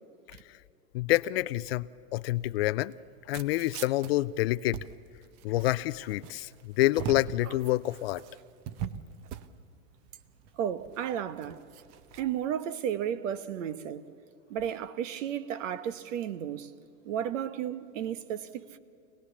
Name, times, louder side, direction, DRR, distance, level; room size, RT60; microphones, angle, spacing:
voice 1, 0.9-1.9 2.1-2.9 3.3-4.8 5.4-8.2, left 17 dB, 45° left, 0.5 m, -27 dB
sound 1, 2.4-12.2, right 9 dB, 40° right, 0.9 m, -43 dB
voice 2, 10.6-11.6 12.1-14.0 14.5-16.7 17.0-18.8, right 9 dB, 60° right, 1.3 m, -33 dB
25.5 x 18.5 x 7.1 m
hypercardioid pair, 125°, 42 cm